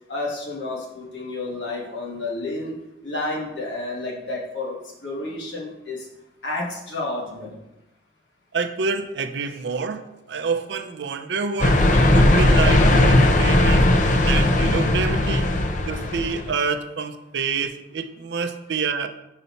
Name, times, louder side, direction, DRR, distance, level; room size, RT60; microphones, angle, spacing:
voice 1, 0.1-2.7 3.0-4.8 5.0-6.1 6.4-7.5, left 2 dB, 80° left, -3 dB, 1.5 m, -30 dB
voice 2, 8.5-10.0 10.3-13.9 14.2-15.5 15.9-19.1, right 5 dB, 70° right, 8 dB, 0.5 m, -27 dB
sound 1, 11.6-16.5, left 1 dB, 45° left, 0.5 m, -17 dB
5.6 x 4.1 x 4.1 m, 0.91 s
head